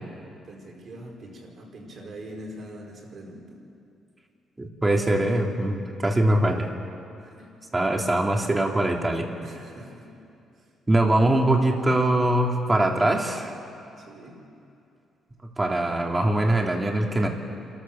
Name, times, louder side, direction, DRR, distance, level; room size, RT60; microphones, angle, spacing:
voice 1, 0.4-3.6 7.2-7.5 9.4-10.1 10.6-10.7 14.0-14.4, right 1 dB, 55° right, 0 dB, 5.0 m, -43 dB
voice 2, 4.6-6.7 7.7-9.3 10.9-13.5 15.6-17.3, right 1 dB, 20° right, 1 dB, 2.8 m, -22 dB
28.0 x 13.0 x 7.3 m, 2.6 s
cardioid pair, 90°, 0 cm